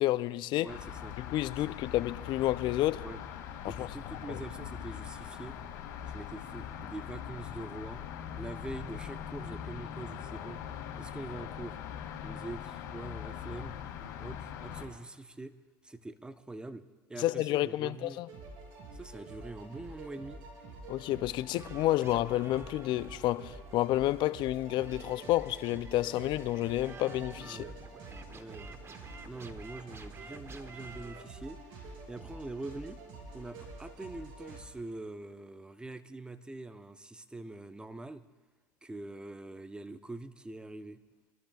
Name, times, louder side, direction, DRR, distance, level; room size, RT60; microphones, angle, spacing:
voice 1, 0.0-0.7 1.2-3.0 3.8-3.9 4.3-4.4 17.2-18.3 20.9-27.6, left 15 dB, 55° left, 0.5 m, -30 dB
voice 2, 0.6-1.2 1.7-1.8 3.0-3.2 3.6-5.6 6.0-8.0 8.4-10.6 11.0-11.8 12.2-13.8 14.2-15.5 15.8-18.2 18.9-20.4 27.4-27.7 28.3-31.6 32.1-33.0 33.3-38.2 38.8-41.0, right 2 dB, 10° right, 0.7 m, -44 dB
sound 1, 0.7-14.9, left 9 dB, 70° left, 2.3 m, -42 dB
sound 2, 18.3-34.6, right 3 dB, 60° right, 5.1 m, -48 dB
sound 3, 21.5-31.2, right 4 dB, 25° right, 1.0 m, -51 dB
26.0 x 13.0 x 2.4 m
hypercardioid pair, 85°, 10 cm